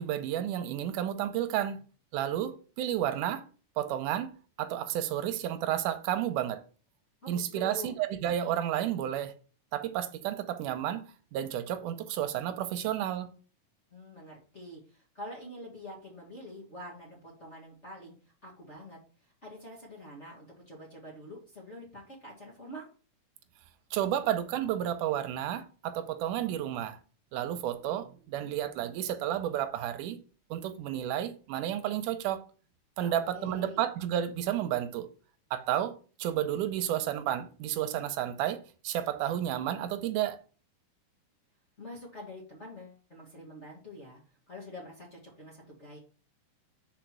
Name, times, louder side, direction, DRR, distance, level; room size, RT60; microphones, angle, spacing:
voice 1, 0.0-1.8 2.1-3.4 3.8-4.3 4.6-6.6 7.3-9.3 9.7-13.3 23.9-27.0 27.3-30.2 30.5-32.4 33.0-35.1 35.5-35.9 36.2-40.4, right 11 dB, 90° right, 2.2 m, -31 dB
voice 2, 7.2-7.9 13.9-14.8 15.1-18.1 18.4-19.0 19.4-22.9 33.0-33.8 41.8-44.2 44.5-46.0, left 1 dB, 30° left, 1.6 m, -46 dB
5.1 x 4.7 x 5.9 m
omnidirectional pair, 3.7 m